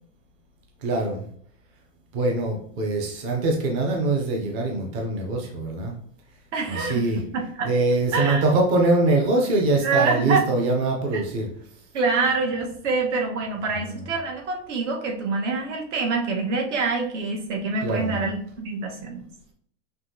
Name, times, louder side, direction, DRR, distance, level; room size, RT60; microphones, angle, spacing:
voice 1, 0.8-1.2 2.1-5.9 6.7-11.5 13.6-14.1 17.8-18.2, right 2 dB, 30° right, 0 dB, 0.5 m, -23 dB
voice 2, 6.5-7.7 8.1-8.4 9.8-10.4 11.1-11.2 11.9-19.2, right 4 dB, 75° right, 1 dB, 1.3 m, -26 dB
5.4 x 2.9 x 2.7 m, 0.62 s
supercardioid pair, 180°, 36 cm